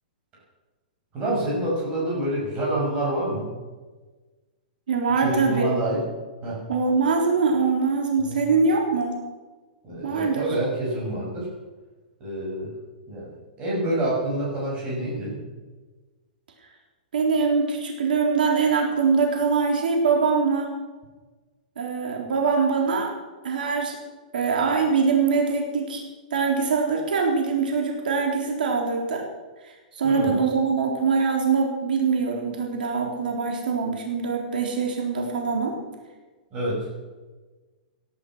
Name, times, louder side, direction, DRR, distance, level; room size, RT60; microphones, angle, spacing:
voice 1, 1.1-3.5 5.2-6.0 6.4-6.6 8.2-8.4 9.8-11.5 12.2-12.7 13.1-13.3 13.6-15.4 30.0-30.3 36.5-36.9, right 1 dB, 20° right, -4 dB, 6.3 m, -27 dB
voice 2, 4.9-5.7 6.7-9.2 10.0-10.4 17.1-20.7 21.8-23.1 23.4-24.0 24.3-26.0 26.3-29.2 29.6-35.7, right 5 dB, 80° right, 1 dB, 3.7 m, -23 dB
17.5 x 11.5 x 6.2 m, 1.3 s
hypercardioid pair, 175°, 5 cm